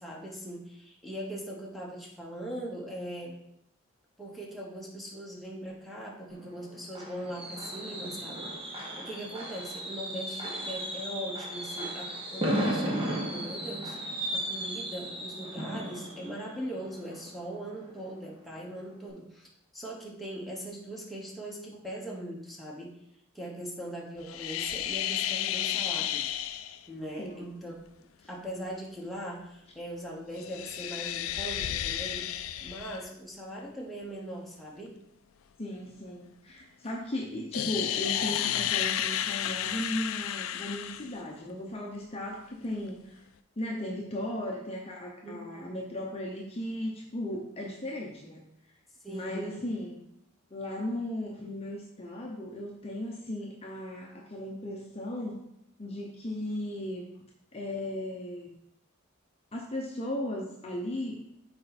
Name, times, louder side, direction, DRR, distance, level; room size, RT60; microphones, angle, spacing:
voice 1, 0.0-3.4 4.2-14.0 14.3-19.5 19.7-22.9 23.3-26.3 26.9-27.8 28.3-32.3 32.6-35.0 45.2-45.7 49.0-49.5, equal, ahead, -4 dB, 1.2 m, -40 dB
Fireworks, 6.3-18.0 18.4-18.7 18.9-19.0, right 1 dB, 25° right, 1.2 m, -35 dB
sound 1, 24.2-26.8 30.3-33.1 37.5-41.1, left 11 dB, 75° left, 0.4 m, -32 dB
voice 2, 35.6-43.2 43.6-48.4 49.1-50.0 50.5-55.4 55.8-57.1 57.5-58.5 59.5-61.2, left 1 dB, 30° left, -1 dB, 0.7 m, -36 dB
6.5 x 4.3 x 4.2 m, 0.78 s
head